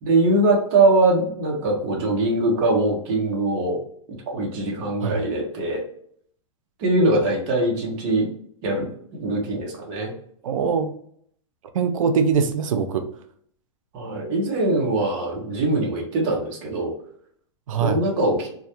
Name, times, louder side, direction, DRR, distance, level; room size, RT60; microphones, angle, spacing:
voice 1, 0.0-3.8 4.3-5.8 6.8-8.3 8.6-8.9 9.1-10.1 13.9-16.9 17.8-18.5, right 2 dB, 25° right, -2 dB, 0.5 m, -22 dB
voice 2, 10.4-10.9 11.7-13.1 17.7-18.0, right 6 dB, 90° right, 8 dB, 0.4 m, -22 dB
2.2 x 2.0 x 2.8 m, 0.65 s
supercardioid pair, 175°, 16 cm